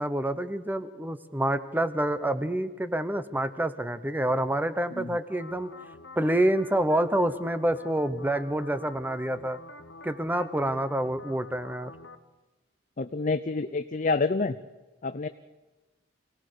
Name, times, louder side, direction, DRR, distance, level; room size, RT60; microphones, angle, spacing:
voice 1, 0.0-5.7 6.2-9.6 10.0-11.9, right 1 dB, 10° right, 12 dB, 0.9 m, -27 dB
sound 1, 5.3-12.2, left 3 dB, 75° left, 1.2 m, -47 dB
voice 2, 13.0-14.6 15.0-15.3, left 3 dB, 45° left, 10 dB, 0.6 m, -28 dB
25.0 x 17.5 x 6.8 m, 1.1 s
head